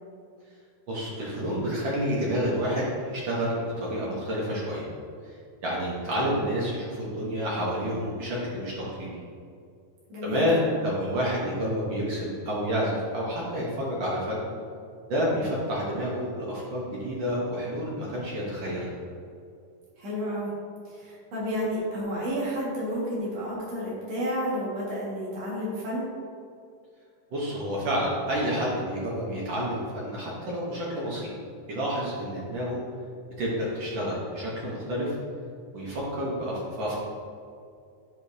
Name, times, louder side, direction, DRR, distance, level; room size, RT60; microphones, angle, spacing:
voice 1, 0.9-4.8 5.2-9.1 10.2-14.4 15.1-18.9 27.3-31.3 31.7-32.8 33.4-35.2 35.7-37.0, equal, 80° right, -5 dB, 1.0 m, -29 dB
voice 2, 10.1-10.5 20.0-20.5 20.9-26.1, equal, 55° right, -7 dB, 2.8 m, -31 dB
10.0 x 4.9 x 2.7 m, 2.3 s
omnidirectional pair, 3.7 m